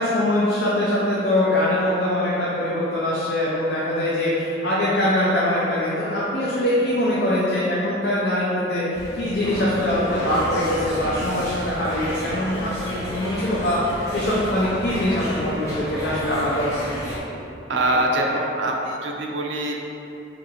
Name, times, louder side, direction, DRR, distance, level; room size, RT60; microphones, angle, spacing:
voice 1, 0.0-13.8 14.1-17.2, left 1 dB, 65° left, -7 dB, 0.5 m, -23 dB
sound 1, 8.9-17.2, equal, 15° left, 0.8 m, -31 dB
voice 2, 17.7-19.7, right 1 dB, 80° right, 1 dB, 0.4 m, -23 dB
2.7 x 2.5 x 4.0 m, 2.8 s
head